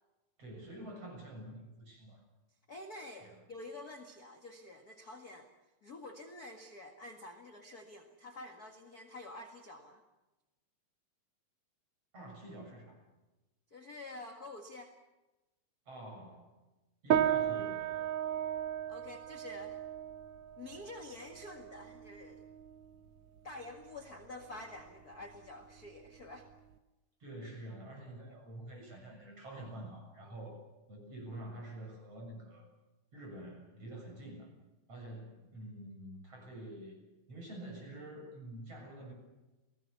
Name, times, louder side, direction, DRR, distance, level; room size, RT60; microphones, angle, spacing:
voice 1, 0.4-2.2 3.2-3.4 12.1-13.0 15.9-16.6 17.0-18.1 27.2-30.6 30.9-32.7 33.1-34.5 34.9-39.1, right 1 dB, 40° right, 1 dB, 8.1 m, -47 dB
voice 2, 2.7-5.5 5.8-10.0 13.7-14.9 18.9-19.8 20.6-22.4 23.4-26.5, left 2 dB, 35° left, 3 dB, 1.6 m, -48 dB
sound 1, 17.1-26.8, right 10 dB, 75° right, 1.3 m, -36 dB
30.0 x 18.5 x 6.9 m, 1.1 s
omnidirectional pair, 4.2 m